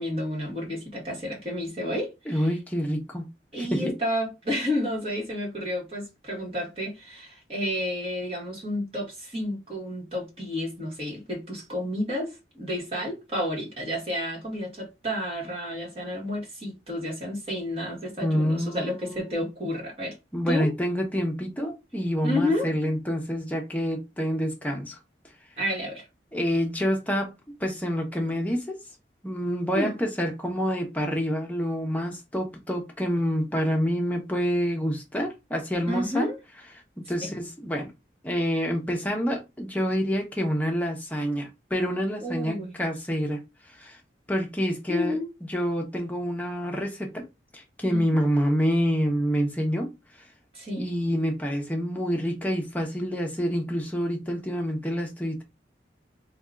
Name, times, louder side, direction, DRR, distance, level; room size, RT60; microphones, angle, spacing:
voice 1, 0.0-2.5 3.5-20.2 20.5-20.7 22.2-22.7 25.6-26.1 29.7-29.9 35.9-36.4 37.2-37.3 42.2-42.8 44.9-45.3 47.9-48.2 50.5-50.9, left 1 dB, 35° right, 1.8 m, -31 dB
voice 2, 2.3-3.3 3.6-3.9 18.2-19.4 20.3-25.0 26.3-27.3 27.6-28.8 29.2-36.3 37.0-37.9 38.2-43.4 43.7-44.0 44.3-47.2 47.5-50.3 50.8-55.4, equal, 10° left, 0.8 m, -27 dB
3.4 x 2.4 x 3.7 m
head